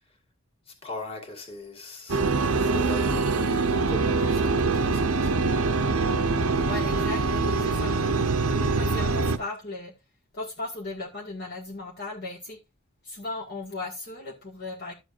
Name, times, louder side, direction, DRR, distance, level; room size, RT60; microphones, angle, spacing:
voice 1, 0.7-5.3, left 1 dB, 25° left, 2.2 m, -40 dB
sound 1, 2.1-9.4, right 3 dB, 80° right, 0.8 m, -24 dB
voice 2, 6.7-8.0 8.5-9.9 10.3-12.6 13.0-14.9, left 2 dB, 50° left, 1.6 m, -36 dB
12.0 x 7.7 x 2.5 m
head